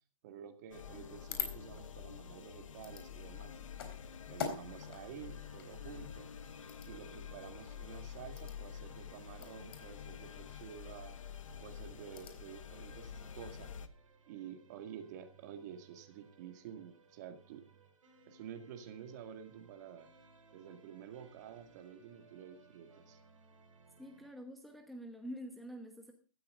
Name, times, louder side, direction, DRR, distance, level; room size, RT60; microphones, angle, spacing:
voice 1, 0.2-3.6 4.3-6.3 6.8-11.2 11.6-13.7 14.3-17.6 18.3-20.1 20.5-23.2, right 9 dB, 35° right, 7 dB, 2.1 m, -50 dB
sound 1, 0.7-13.9, left 8 dB, 75° left, 1.5 m, -48 dB
sound 2, 0.9-12.6, left 6 dB, 45° left, 3.9 m, -48 dB
sound 3, 4.5-24.3, right 4 dB, 75° right, 6.3 m, -64 dB
voice 2, 24.0-26.1, equal, ahead, 2 dB, 1.0 m, -47 dB
16.5 x 13.5 x 3.8 m, 0.35 s
hypercardioid pair, 165°, 17 cm